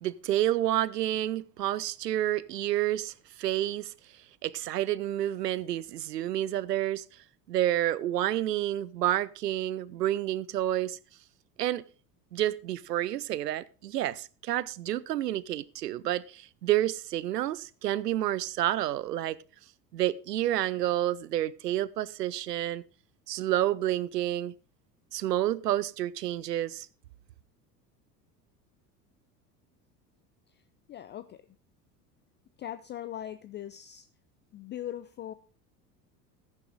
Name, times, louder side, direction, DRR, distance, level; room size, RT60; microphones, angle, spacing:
voice 1, 0.0-3.9 4.4-7.0 7.5-11.0 11.6-11.8 12.3-19.4 19.9-22.8 23.3-24.5 25.1-26.9, right 13 dB, 75° right, 0.7 m, -29 dB
voice 2, 30.9-31.4 32.6-34.1 34.5-35.3, left 11 dB, 25° left, 0.5 m, -40 dB
14.0 x 9.8 x 3.9 m
figure-of-eight pair, 70°, 48 cm